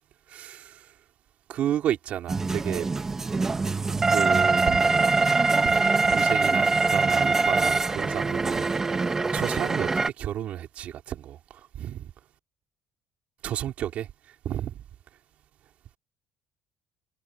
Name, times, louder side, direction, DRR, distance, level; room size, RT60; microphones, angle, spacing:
voice 1, 0.3-0.9 1.5-2.9 4.1-5.1 5.6-12.0 13.4-14.8, right 11 dB, 45° right, 3.8 m, -32 dB
sound 1, 2.3-10.1, right 3 dB, 15° right, 1.3 m, -23 dB
cardioid pair, 180°, 3 cm